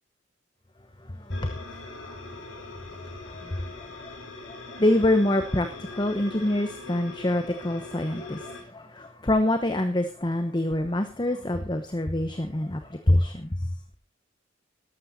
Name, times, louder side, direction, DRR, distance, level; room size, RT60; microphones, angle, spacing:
voice 1, 1.1-2.2 2.5-2.6 3.0-4.2 4.4-13.7, left 1 dB, 20° left, 8 dB, 1.0 m, -26 dB
sound 1, 1.3-8.6, left 3 dB, 70° left, 3.9 m, -42 dB
13.5 x 12.0 x 4.1 m, 0.36 s
head